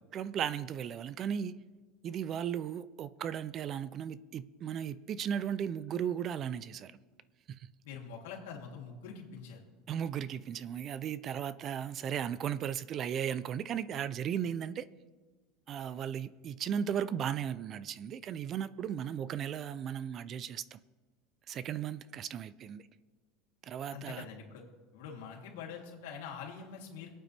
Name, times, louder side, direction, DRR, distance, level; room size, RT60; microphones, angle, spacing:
voice 1, 0.1-1.6 2.0-7.0 7.5-7.7 9.9-14.9 15.7-20.8 21.5-22.8 23.6-24.3, right 9 dB, 30° right, 0.4 m, -36 dB
voice 2, 7.8-9.6 23.9-24.6 24.9-27.1, left 6 dB, 80° left, 3.1 m, -45 dB
26.0 x 8.9 x 3.4 m
supercardioid pair, 160°, 0 cm